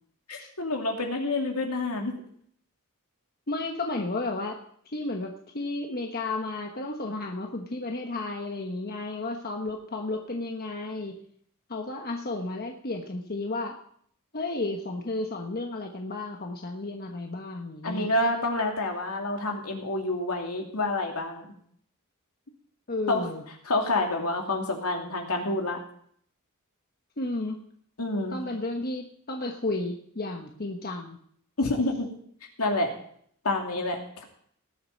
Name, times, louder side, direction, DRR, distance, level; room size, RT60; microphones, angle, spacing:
voice 1, 0.3-2.2 17.8-21.5 23.1-23.2 23.7-25.8 28.0-28.4 31.6-32.1 32.6-32.9 33.4-34.2, left 2 dB, 80° left, 2 dB, 2.8 m, -28 dB
voice 2, 3.5-4.6 4.9-11.2 11.7-13.8 14.3-18.1 22.9-23.4 27.2-27.6 28.3-31.2, left 2 dB, 45° left, 3 dB, 1.2 m, -32 dB
19.0 x 7.9 x 5.3 m, 0.63 s
head